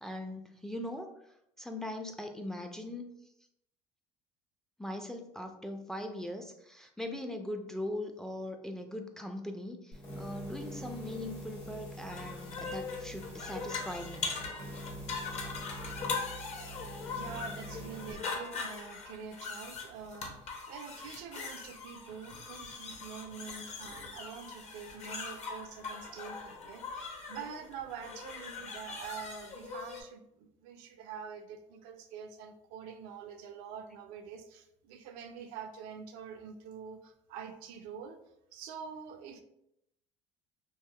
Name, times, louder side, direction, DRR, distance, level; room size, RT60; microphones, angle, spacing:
voice 1, 0.0-1.1 1.6-3.1 4.8-14.4, left 1 dB, 5° left, 5 dB, 0.3 m, -40 dB
sound 1, 9.9-18.2, right 1 dB, 85° left, 1.3 m, -45 dB
sound 2, 12.1-30.0, left 4 dB, 50° left, 0.7 m, -41 dB
voice 2, 17.1-38.2 38.5-39.4, right 7 dB, 75° right, 6 dB, 0.4 m, -46 dB
3.4 x 2.4 x 2.2 m, 0.81 s
supercardioid pair, 90°, 15 cm